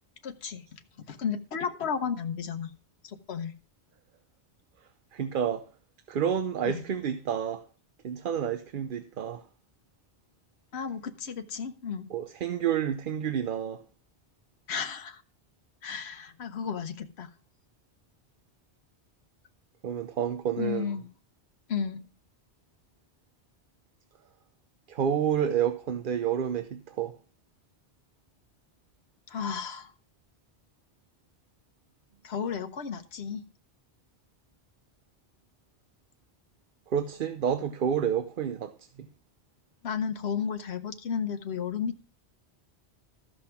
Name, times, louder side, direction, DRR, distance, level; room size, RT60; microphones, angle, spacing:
voice 1, 0.2-2.7 3.0-3.5 6.6-6.8 10.7-12.1 14.7-15.2 15.8-17.3 20.6-21.1 21.7-22.0 29.3-29.9 32.2-33.5 39.8-42.0, left 7 dB, 75° left, 1.2 m, -33 dB
voice 2, 5.1-5.7 6.1-7.6 8.0-9.4 12.1-13.8 19.8-21.0 24.9-27.2 36.9-39.1, right 8 dB, 55° right, 0.8 m, -29 dB
13.5 x 5.6 x 5.7 m
omnidirectional pair, 1.1 m